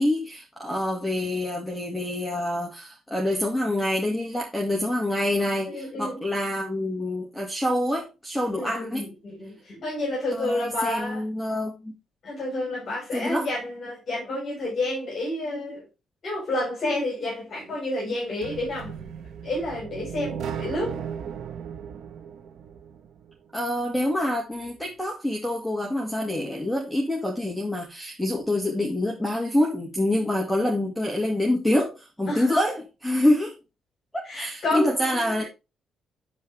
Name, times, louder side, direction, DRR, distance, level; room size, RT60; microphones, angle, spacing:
voice 1, 0.0-9.0 10.3-11.9 13.1-13.5 23.5-33.6 34.1-35.4, left 1 dB, ahead, 2.3 m, -26 dB
voice 2, 5.7-6.2 8.5-11.2 12.2-15.9 16.2-19.0 19.4-21.0 32.3-32.6 34.2-35.5, left 1 dB, 50° left, 5.0 m, -30 dB
sound 1, 18.4-23.3, right 8 dB, 75° right, 1.4 m, -36 dB
10.5 x 4.7 x 3.5 m
cardioid pair, 90°, 0 cm